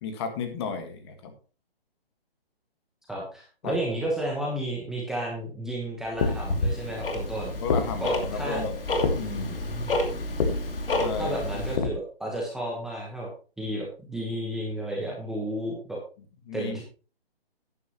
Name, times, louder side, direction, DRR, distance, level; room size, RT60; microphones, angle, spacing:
voice 1, 0.0-1.3 3.6-3.7 7.5-8.8 9.1-9.6 11.0-11.4 16.4-16.8, left 5 dB, 25° left, 7 dB, 1.6 m, -33 dB
voice 2, 3.1-7.5 8.0-8.6 9.3-10.0 11.2-13.3 13.6-16.0 16.5-16.8, right 1 dB, ahead, -3 dB, 1.1 m, -32 dB
sound 1, 6.0-12.0, left 4 dB, 45° left, 1.7 m, -31 dB
Tick-tock, 6.2-11.8, left 1 dB, 65° left, 2.6 m, -30 dB
12.0 x 10.0 x 3.0 m, 0.36 s
hypercardioid pair, 155°, 30 cm